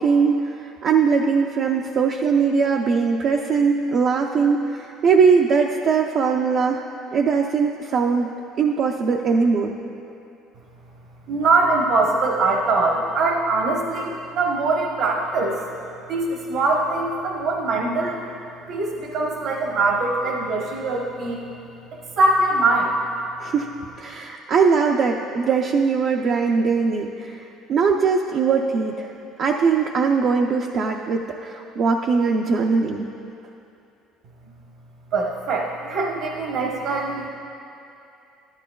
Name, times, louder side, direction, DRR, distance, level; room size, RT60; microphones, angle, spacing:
voice 1, 0.0-6.8 7.1-8.3 8.6-9.7 23.4-23.7 24.0-29.1 29.4-33.1, right 5 dB, 45° right, 0 dB, 0.5 m, -20 dB
voice 2, 11.3-15.6 16.1-18.2 18.7-21.4 22.2-23.0 35.1-37.3, right 3 dB, 65° right, -1 dB, 1.1 m, -22 dB
13.0 x 12.0 x 2.3 m, 2.7 s
cardioid pair, 135°, 0 cm